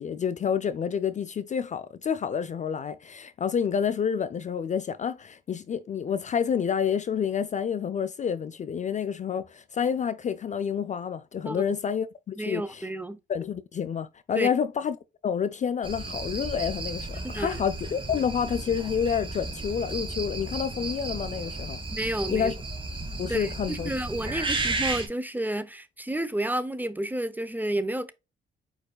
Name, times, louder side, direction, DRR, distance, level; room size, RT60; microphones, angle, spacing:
voice 1, 0.0-12.9 13.3-15.0 15.2-21.8 22.3-22.5 23.2-23.9 24.3-24.4, left 7 dB, 35° left, 0.4 m, -29 dB
voice 2, 12.4-13.2 14.4-14.5 17.2-17.6 21.9-22.5 23.3-28.1, right 1 dB, 10° right, 0.6 m, -31 dB
sound 1, 15.8-25.1, right 3 dB, 25° right, 1.6 m, -34 dB
4.8 x 4.5 x 2.3 m
cardioid pair, 90°, 20 cm